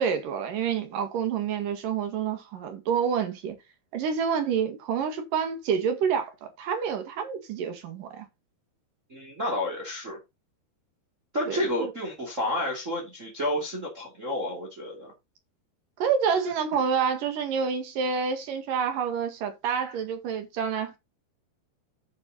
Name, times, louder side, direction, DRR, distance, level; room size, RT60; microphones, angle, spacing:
voice 1, 0.0-3.6 3.9-8.3 11.4-11.9 16.0-21.0, right 7 dB, 60° right, 3.2 m, -28 dB
voice 2, 9.1-10.2 11.3-15.1, left 1 dB, 20° right, 2.6 m, -30 dB
9.6 x 6.9 x 4.0 m
omnidirectional pair, 4.6 m